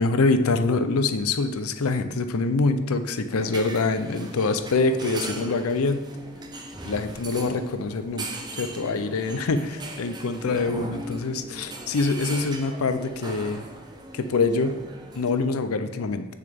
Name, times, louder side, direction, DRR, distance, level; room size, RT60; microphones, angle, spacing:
voice 1, 0.0-6.0 6.8-8.2 8.5-13.6 14.1-14.8 15.2-16.3, left 3 dB, 85° left, 10 dB, 0.5 m, -25 dB
sound 1, 3.3-15.3, right 2 dB, 20° right, 0.6 m, -38 dB
7.8 x 6.5 x 3.5 m, 1.2 s
head